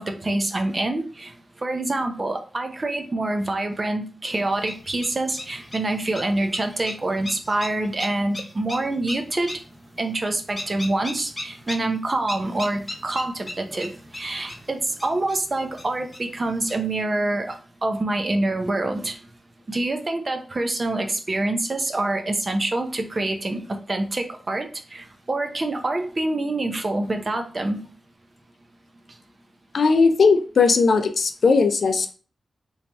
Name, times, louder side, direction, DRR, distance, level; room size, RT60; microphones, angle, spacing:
voice 1, 0.0-9.6 10.0-19.2 19.7-27.8, right 2 dB, 35° right, 6 dB, 0.5 m, -26 dB
sound 1, 4.3-17.0, left 1 dB, 25° left, 0.6 m, -39 dB
voice 2, 29.7-32.1, left 4 dB, 65° left, 8 dB, 0.4 m, -18 dB
3.1 x 2.7 x 3.3 m, 0.39 s
wide cardioid pair, 110°, 0 cm